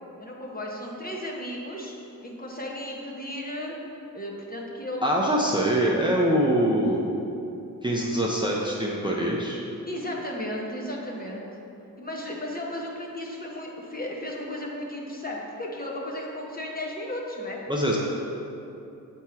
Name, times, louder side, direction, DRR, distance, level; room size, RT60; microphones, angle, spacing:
voice 1, 0.2-1.9 2.2-3.8 4.1-5.6 9.9-11.5 12.0-17.6, left 1 dB, 25° left, -2 dB, 1.0 m, -34 dB
voice 2, 5.0-7.1 7.8-9.6 17.7-18.0, right 1 dB, 15° right, -4 dB, 0.7 m, -24 dB
7.3 x 3.6 x 4.4 m, 2.8 s
cardioid pair, 75°, 36 cm